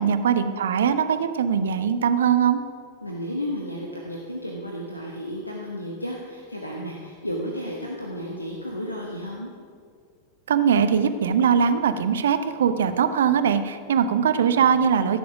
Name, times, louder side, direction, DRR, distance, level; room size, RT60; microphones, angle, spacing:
voice 1, 0.0-2.6 10.5-15.2, right 7 dB, 65° right, 11 dB, 0.7 m, -21 dB
voice 2, 3.0-9.5, equal, 85° left, -1 dB, 1.2 m, -33 dB
15.5 x 7.2 x 6.0 m, 2.1 s
figure-of-eight pair, 90°, 0 cm